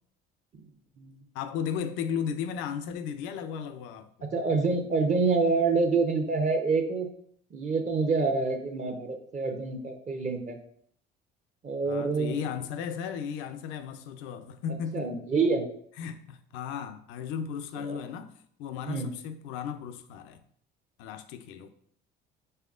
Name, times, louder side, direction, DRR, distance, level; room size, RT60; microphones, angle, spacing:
voice 1, 1.3-4.1 11.8-15.1 16.0-20.4 21.0-21.7, left 7 dB, 80° left, 0.5 m, -35 dB
voice 2, 4.2-7.1 7.5-10.6 11.6-12.3 14.9-15.6 17.8-18.0 18.9-19.1, right 4 dB, 40° right, 0.8 m, -27 dB
5.6 x 3.5 x 2.4 m
supercardioid pair, 90°, 20 cm